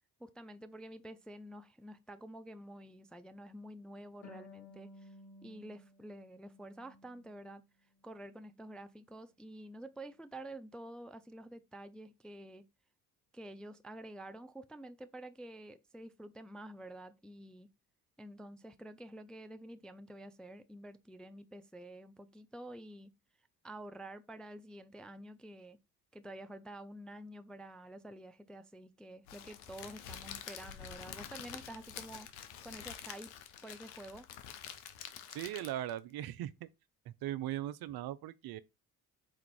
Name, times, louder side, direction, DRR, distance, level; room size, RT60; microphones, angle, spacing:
voice 1, 0.2-5.1 5.4-7.6 8.0-12.7 13.3-17.7 18.2-23.1 23.6-25.8 26.1-32.3 32.6-33.3 33.6-34.3, right 1 dB, ahead, 0.3 m, -49 dB
Harp, 4.2-7.6 8.0-9.0, left 2 dB, 60° left, 1.4 m, -57 dB
Crackle, 29.3-36.0, left 9 dB, 80° left, 0.7 m, -48 dB
voice 2, 35.3-36.7 37.1-38.6, right 13 dB, 60° right, 0.5 m, -39 dB
4.2 x 2.4 x 4.6 m
hypercardioid pair, 45°, 42 cm